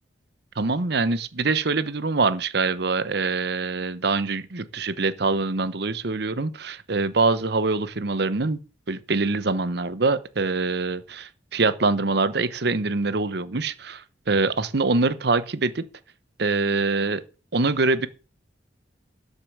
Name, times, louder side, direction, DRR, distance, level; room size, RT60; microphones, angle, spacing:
voice 1, 0.6-8.6 8.9-15.8 16.4-17.2 17.5-18.1, right 3 dB, 60° right, 0.9 m, -24 dB
12.0 x 6.6 x 6.7 m
head